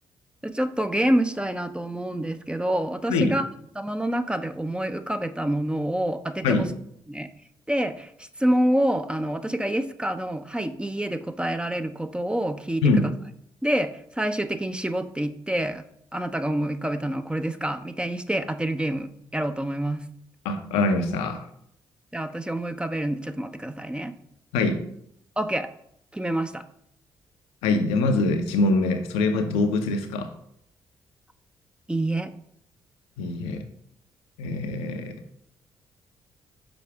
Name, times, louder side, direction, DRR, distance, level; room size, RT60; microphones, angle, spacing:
voice 1, 0.4-3.5 3.8-6.7 7.1-7.3 7.7-12.8 13.6-15.8 16.1-20.1 22.1-24.1 25.4-25.7 26.1-26.6 31.9-32.3, right 1 dB, 10° right, 9 dB, 0.6 m, -27 dB
voice 2, 20.4-21.5 24.5-24.8 27.6-30.3 33.2-33.7 34.4-35.2, left 3 dB, 75° left, 6 dB, 0.6 m, -23 dB
6.1 x 4.8 x 3.5 m, 0.71 s
hypercardioid pair, 40°, 11 cm